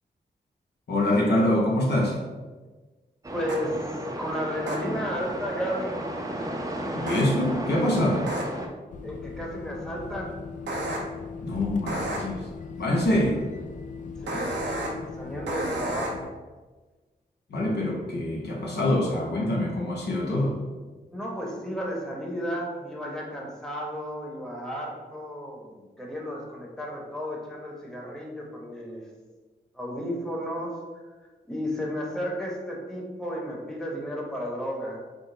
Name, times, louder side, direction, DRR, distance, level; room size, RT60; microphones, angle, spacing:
voice 1, 0.9-2.2 6.9-8.3 11.4-12.4 12.8-13.4 17.5-20.6, left 1 dB, 65° left, -3 dB, 0.8 m, -25 dB
sound 1, 3.2-8.7, right 1 dB, 20° right, 0.6 m, -33 dB
voice 2, 3.3-3.8 4.2-6.0 9.0-10.4 14.2-16.3 21.1-29.0 29.7-30.7 31.4-35.0, equal, 5° left, -2 dB, 1.0 m, -33 dB
sound 2, 3.5-3.6 4.7-4.8 7.1-7.2 8.3-8.4 10.7-11.0 11.9-12.2 14.3-14.9 15.5-16.1, right 2 dB, 80° right, 0.6 m, -31 dB
sound 3, 8.9-16.3, left 5 dB, 45° left, 0.4 m, -39 dB
3.7 x 2.0 x 3.8 m, 1.3 s
cardioid pair, 45°, 18 cm